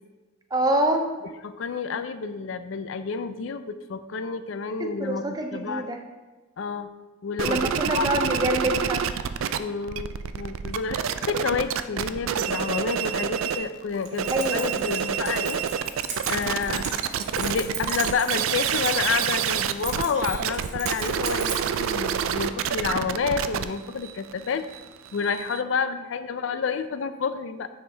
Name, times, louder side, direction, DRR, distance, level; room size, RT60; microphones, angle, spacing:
voice 1, 0.5-1.0 4.8-6.0 7.4-9.0 14.3-14.7, right 1 dB, 20° right, 4 dB, 0.5 m, -26 dB
voice 2, 1.4-5.9 6.6-6.9 7.2-8.1 9.6-11.0 11.3-15.6 16.3-16.9 17.3-24.6 25.1-27.7, left 5 dB, 70° left, 11 dB, 0.4 m, -29 dB
sound 1, 7.4-9.6 9.8-13.7 14.1-25.6, right 8 dB, 80° right, 0.3 m, -28 dB
Keys jangling, 13.9-21.9, right 5 dB, 35° right, 0.9 m, -37 dB
9.4 x 4.4 x 3.4 m, 1.2 s
head